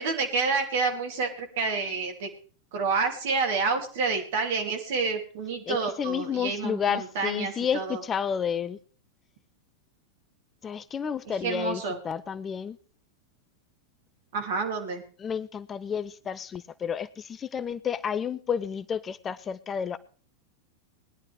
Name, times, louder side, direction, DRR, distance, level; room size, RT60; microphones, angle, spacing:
voice 1, 0.0-2.3 2.7-8.0 11.2-12.0 14.3-15.0, right 4 dB, 55° right, 3 dB, 2.9 m, -29 dB
voice 2, 5.7-8.8 10.6-12.8 15.2-20.0, left 7 dB, 20° left, 17 dB, 0.5 m, -31 dB
20.0 x 10.5 x 3.5 m, 0.41 s
figure-of-eight pair, 90°, 0 cm